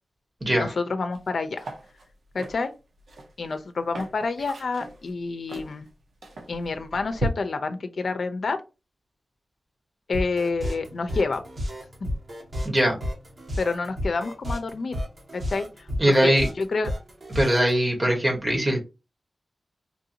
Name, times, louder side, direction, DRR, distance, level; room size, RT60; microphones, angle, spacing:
voice 1, 0.5-1.7 2.3-2.7 3.4-5.9 6.5-8.6 10.1-11.4 13.6-15.0 15.3-15.9 16.2-16.9, left 4 dB, 65° left, 8 dB, 0.6 m, -28 dB
sound 1, 1.1-1.3 1.6-7.3, right 2 dB, 80° right, 1.0 m, -37 dB
sound 2, 10.1-17.7, equal, 45° right, 1.9 m, -31 dB
voice 2, 16.0-16.5 17.3-18.8, right 1 dB, 25° right, 0 dB, 1.7 m, -21 dB
4.5 x 2.7 x 2.8 m, 0.28 s
wide cardioid pair, 100°, 0 cm